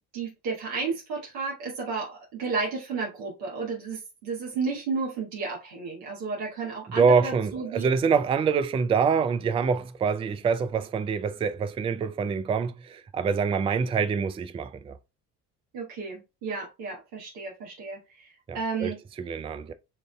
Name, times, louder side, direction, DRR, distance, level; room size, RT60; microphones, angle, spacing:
voice 1, 0.1-7.9 15.7-19.0, right 4 dB, 75° right, 1.6 m, -32 dB
voice 2, 7.0-14.9 18.5-19.7, right 5 dB, 15° right, 0.3 m, -25 dB
7.0 x 2.6 x 2.2 m
figure-of-eight pair, 55°, 49 cm